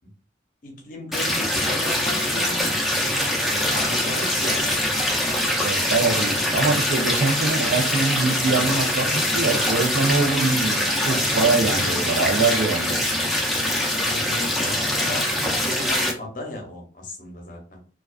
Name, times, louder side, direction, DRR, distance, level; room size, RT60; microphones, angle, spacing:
voice 1, 0.6-2.7 3.4-4.8 5.1-5.2 14.0-17.8, left 1 dB, 45° left, 1 dB, 0.7 m, -35 dB
sound 1, 1.1-16.1, left 1 dB, ahead, 0.4 m, -23 dB
voice 2, 5.6-13.0, right 4 dB, 85° right, 4 dB, 0.5 m, -23 dB
2.3 x 2.3 x 2.3 m, 0.39 s
head